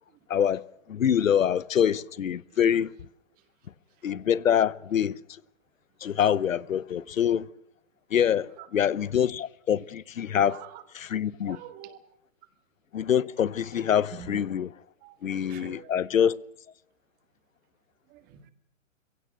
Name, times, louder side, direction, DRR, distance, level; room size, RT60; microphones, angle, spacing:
voice 1, 0.3-0.6 0.9-2.9 4.0-5.1 6.0-7.5 8.1-10.6 10.9-11.6 12.9-14.7 15.2-16.4, left 9 dB, 85° left, 0.9 m, -25 dB
voice 2, 8.6-9.0 10.3-10.8 11.5-12.0 14.1-14.4 15.0-15.2 15.5-15.9 18.1-18.5, right 12 dB, 25° right, 1.8 m, -45 dB
22.0 x 16.5 x 8.9 m
hypercardioid pair, 145°, 39 cm